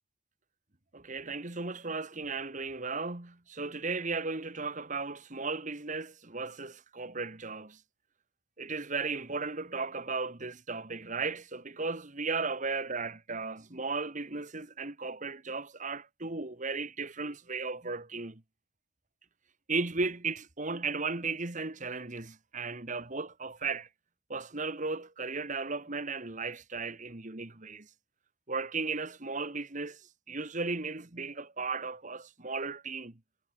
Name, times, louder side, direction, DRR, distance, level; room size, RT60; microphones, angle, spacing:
voice 1, 0.9-7.8 8.6-18.4 19.7-23.9 24.3-27.9 28.5-30.0 30.3-33.1, right 4 dB, 40° right, 1.6 m, -35 dB
head